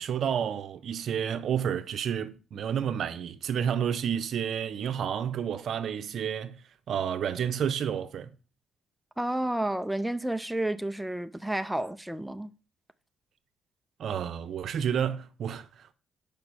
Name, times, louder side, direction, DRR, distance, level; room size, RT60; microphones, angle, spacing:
voice 1, 0.0-6.6 6.9-8.3 14.0-15.9, right 8 dB, 65° right, 0.6 m, -30 dB
voice 2, 9.2-12.5, right 1 dB, 5° right, 0.4 m, -31 dB
6.0 x 5.1 x 5.3 m
cardioid pair, 90°, 0 cm